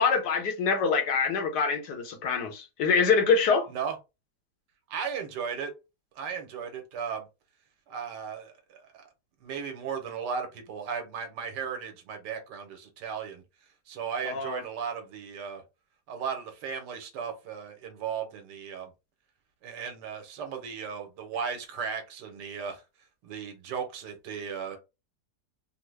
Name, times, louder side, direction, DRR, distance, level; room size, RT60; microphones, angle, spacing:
voice 1, 0.0-3.7 14.2-14.6, left 5 dB, 80° left, 1.3 m, -25 dB
voice 2, 4.9-5.7 6.2-7.2 7.9-9.1 9.4-13.4 13.9-15.6 16.1-18.9 19.6-22.8 23.2-24.8, right 6 dB, 85° right, 1.4 m, -36 dB
3.6 x 2.0 x 3.1 m
omnidirectional pair, 1.8 m